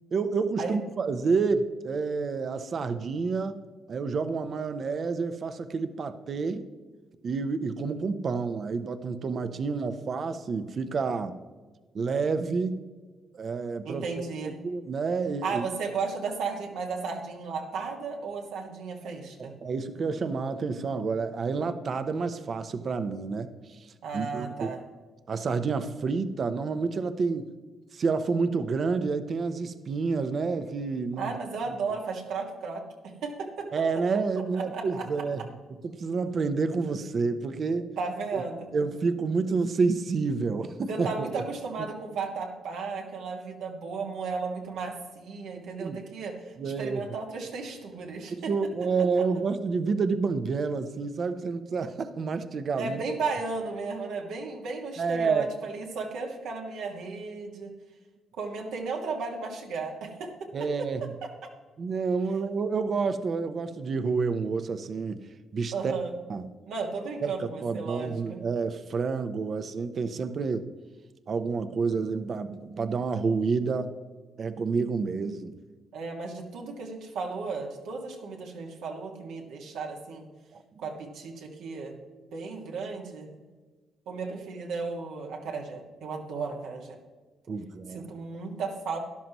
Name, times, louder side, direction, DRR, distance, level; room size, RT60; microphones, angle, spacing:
voice 1, 0.1-3.6 3.9-6.7 7.2-11.3 11.9-12.8 13.3-14.0 14.6-15.6 19.4-23.8 24.1-24.7 25.3-27.5 27.9-31.3 33.7-35.4 35.8-37.9 38.3-38.4 38.7-41.4 45.8-46.0 46.6-47.0 48.3-53.0 55.0-55.5 60.5-61.1 61.8-65.2 65.5-65.9 66.3-66.4 67.2-67.3 67.6-70.7 71.3-73.9 74.4-75.5 80.5-80.6 87.5-88.1, right 4 dB, 50° right, 10 dB, 0.8 m, -29 dB
voice 2, 13.8-14.6 15.4-19.5 24.0-24.8 31.2-33.7 34.5-35.1 38.0-38.7 40.9-48.5 49.2-49.3 52.8-57.7 58.4-61.3 65.7-66.1 66.7-68.4 75.9-80.3 80.8-81.9 82.3-83.3 84.1-87.0 87.9-89.0, right 4 dB, 85° right, 0 dB, 1.9 m, -34 dB
13.0 x 11.0 x 3.0 m, 1.3 s
cardioid pair, 90°, 0 cm